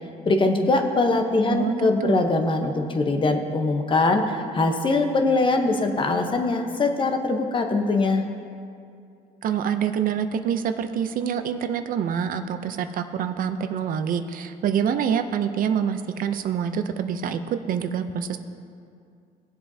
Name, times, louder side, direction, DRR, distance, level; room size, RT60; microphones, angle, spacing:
voice 1, 0.2-8.2, left 3 dB, 30° left, 5 dB, 0.9 m, -22 dB
voice 2, 1.5-2.3 9.4-18.4, right 8 dB, 55° right, 9 dB, 0.6 m, -26 dB
17.5 x 7.7 x 2.7 m, 2.4 s
cardioid pair, 110°, 17 cm